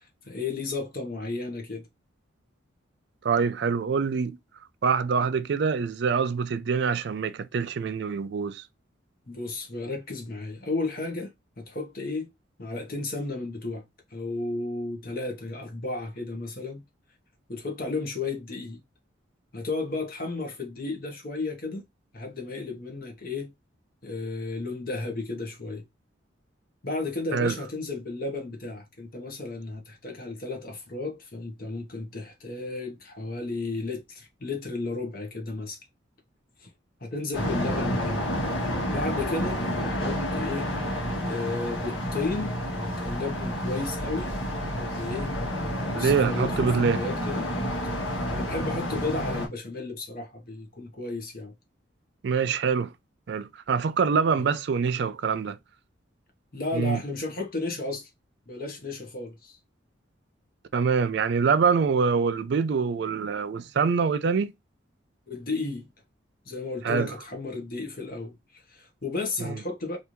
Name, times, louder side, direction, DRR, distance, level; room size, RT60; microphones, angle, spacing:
voice 1, 0.0-1.9 9.3-12.3 12.6-13.8 14.1-16.8 17.5-18.8 19.5-21.8 22.1-23.5 24.0-25.9 26.8-35.8 36.6-36.7 37.0-38.2 38.9-40.7 41.2-44.3 44.6-47.5 48.3-51.5 56.5-58.1 58.5-59.6 65.3-65.9 66.5-70.0, left 3 dB, 50° left, 1.0 m, -33 dB
voice 2, 3.2-4.4 4.8-8.6 27.3-27.5 45.9-47.0 52.2-52.9 53.3-55.6 56.7-57.0 60.7-64.5 66.8-67.1 69.4-69.6, right 5 dB, 60° right, 0.3 m, -25 dB
sound 1, 37.3-49.5, equal, 70° left, 1.5 m, -29 dB
3.3 x 2.6 x 2.9 m
head